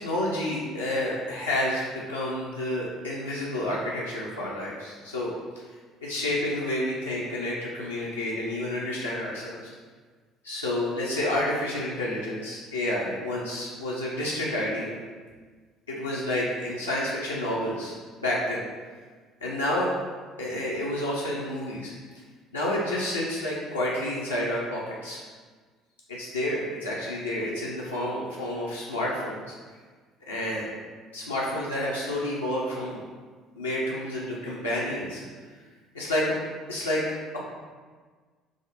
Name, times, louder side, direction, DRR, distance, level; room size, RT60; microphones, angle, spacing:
voice 1, 0.0-5.3 5.6-5.7 6.0-9.7 10.4-15.0 15.9-17.9 18.2-18.7 19.4-19.9 20.4-21.9 22.5-25.2 26.1-29.5 30.3-30.7 31.1-33.0 33.6-35.2 35.9-36.4 36.7-37.0, left 1 dB, 80° left, -6 dB, 0.4 m, -29 dB
4.7 x 2.0 x 2.5 m, 1.5 s
figure-of-eight pair, 55°, 0 cm